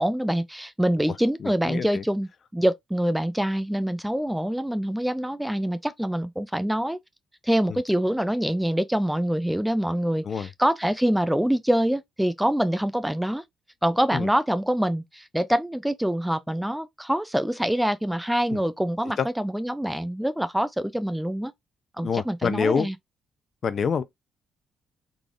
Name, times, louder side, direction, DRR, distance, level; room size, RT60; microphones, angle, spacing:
voice 1, 0.0-7.0 7.4-13.4 13.8-21.5 22.0-22.9, equal, 5° right, 0.3 m, -25 dB
voice 2, 1.4-2.0 7.7-7.8 10.2-10.5 14.1-14.3 18.5-18.6 19.2-19.3 22.0-22.9 23.6-24.0, left 6 dB, 50° left, 0.6 m, -26 dB
3.9 x 3.3 x 2.4 m
cardioid pair, 90°, 0 cm